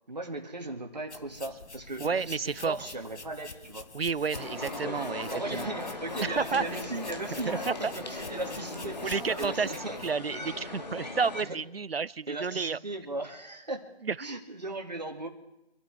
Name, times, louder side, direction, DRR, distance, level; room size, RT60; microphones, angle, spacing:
voice 1, 0.1-3.9 4.8-5.0 5.3-10.0 11.4-11.6 12.3-13.8 14.2-15.3, right 2 dB, 40° right, 2 dB, 2.1 m, -37 dB
sound 1, 1.1-10.1, left 3 dB, 90° left, 1.1 m, -47 dB
voice 2, 2.0-2.9 3.9-5.7 6.2-6.6 7.3-7.9 9.0-9.7 10.0-12.8 14.0-14.2, right 5 dB, 65° right, 22 dB, 0.5 m, -31 dB
sound 2, 4.3-11.4, left 2 dB, 40° left, 1.6 m, -38 dB
sound 3, 6.3-9.5, right 1 dB, ahead, 2.0 m, -58 dB
26.5 x 12.5 x 3.5 m, 0.90 s
figure-of-eight pair, 175°, 33 cm